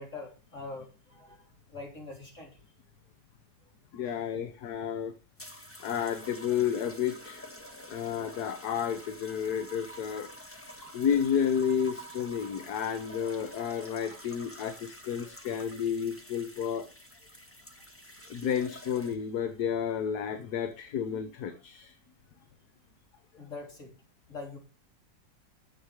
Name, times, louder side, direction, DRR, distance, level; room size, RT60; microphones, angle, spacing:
voice 1, 0.0-2.6 4.0-4.2 10.8-10.9 23.4-23.9 24.3-24.6, left 3 dB, 45° left, 0 dB, 3.9 m, -44 dB
voice 2, 3.9-5.1 5.8-7.5 7.9-10.3 10.9-16.9 18.3-21.9, left 8 dB, 65° left, 9 dB, 1.4 m, -31 dB
sound 1, 5.4-19.4 20.3-20.6, equal, 10° left, 1.0 m, -48 dB
10.5 x 7.6 x 4.8 m, 0.33 s
omnidirectional pair, 1.9 m